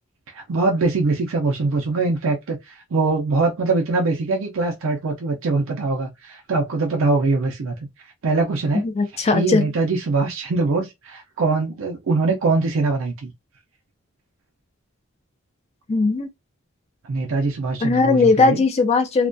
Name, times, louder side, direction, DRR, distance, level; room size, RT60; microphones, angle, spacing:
voice 1, 0.3-7.8 8.2-8.9 9.3-13.3 17.1-18.6, right 3 dB, 70° right, 0.4 m, -22 dB
voice 2, 9.0-9.6 15.9-16.3 17.8-19.3, left 4 dB, 30° left, 0.4 m, -18 dB
2.2 x 2.2 x 2.5 m
head